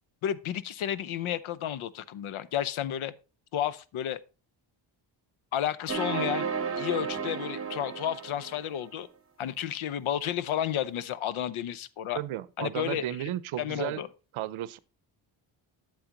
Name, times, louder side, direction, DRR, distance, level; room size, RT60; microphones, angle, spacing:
voice 1, 0.2-3.1 3.5-4.2 5.5-6.5 6.8-9.1 9.4-12.2 12.6-13.0 13.6-14.1, left 10 dB, 75° left, 0.7 m, -31 dB
sound 1, 5.9-8.9, right 6 dB, 30° right, 1.0 m, -33 dB
voice 2, 12.1-14.0 14.3-14.8, right 13 dB, 75° right, 0.7 m, -34 dB
8.8 x 7.7 x 2.9 m
cardioid pair, 110°, 49 cm